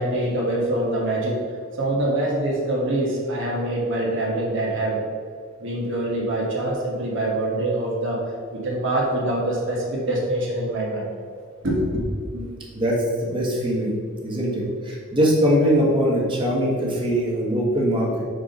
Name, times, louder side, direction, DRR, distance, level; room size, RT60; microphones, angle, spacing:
voice 1, 0.0-1.4 1.8-5.0 5.6-8.2 8.5-11.1 11.6-12.5, right 1 dB, 65° right, -3 dB, 1.3 m, -24 dB
voice 2, 12.7-18.2, equal, 25° right, -4 dB, 1.4 m, -22 dB
4.8 x 4.3 x 5.1 m, 2.2 s
head